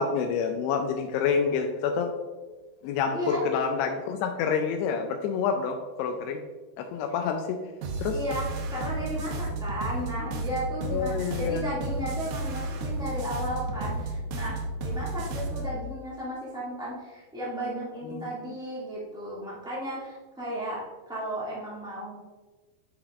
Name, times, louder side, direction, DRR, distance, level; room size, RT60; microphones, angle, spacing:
voice 1, 0.0-2.1 2.8-6.4 6.8-7.6 8.0-8.2 10.9-11.6 18.1-18.3, left 6 dB, 85° left, 4 dB, 2.7 m, -28 dB
voice 2, 3.1-3.4 8.1-22.1, equal, 5° right, -8 dB, 0.3 m, -34 dB
sound 1, 7.8-15.7, right 2 dB, 75° right, 2.4 m, -32 dB
9.7 x 5.9 x 2.5 m, 1.3 s
omnidirectional pair, 4.8 m